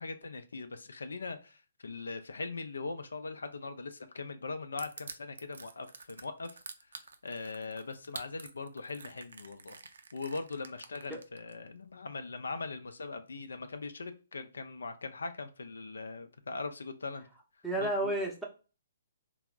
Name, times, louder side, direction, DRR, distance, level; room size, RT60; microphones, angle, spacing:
voice 1, 0.0-6.6 7.2-9.8 10.1-17.3 17.8-18.1, left 3 dB, 85° left, 0.4 m, -40 dB
Crushing, 4.8-11.5, right 4 dB, 80° right, 0.4 m, -47 dB
voice 2, 17.6-18.4, right 1 dB, ahead, 0.7 m, -31 dB
3.3 x 2.0 x 2.3 m
hypercardioid pair, 140°, 0 cm